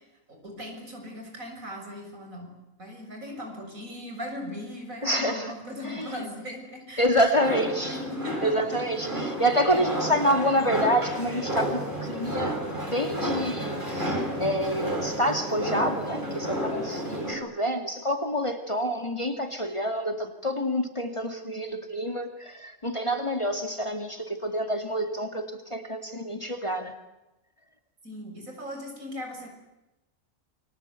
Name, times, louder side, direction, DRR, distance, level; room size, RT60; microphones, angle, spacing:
voice 1, 0.3-2.5 2.8-8.5 9.9-10.1 28.0-29.5, left 1 dB, 70° right, 3 dB, 7.3 m, -38 dB
voice 2, 5.0-5.5 5.8-6.2 7.0-8.0 8.4-12.5 12.9-26.9, equal, 20° left, 5 dB, 2.2 m, -27 dB
sound 1, 7.3-17.3, right 1 dB, 35° right, 6.4 m, -31 dB
29.0 x 23.0 x 8.3 m, 0.99 s
omnidirectional pair, 1.5 m